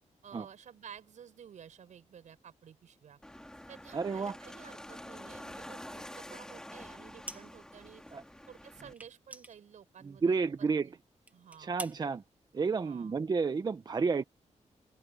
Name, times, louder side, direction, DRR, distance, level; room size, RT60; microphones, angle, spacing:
voice 1, 0.2-3.2 3.7-8.0 8.5-11.0 11.3-11.7 12.8-13.1, right 8 dB, 80° right, 6.3 m, -53 dB
sound 1, 3.2-8.9, left 1 dB, 5° left, 2.1 m, -47 dB
voice 2, 3.9-4.4 8.1-8.2 10.0-10.9 11.6-12.2 12.5-14.2, right 4 dB, 35° right, 0.7 m, -31 dB
sound 2, 7.2-7.8 8.1-8.2 8.9-10.4 10.7-10.9 11.2-12.0, right 2 dB, 10° right, 1.0 m, -46 dB
open air
wide cardioid pair, 140°, 12 cm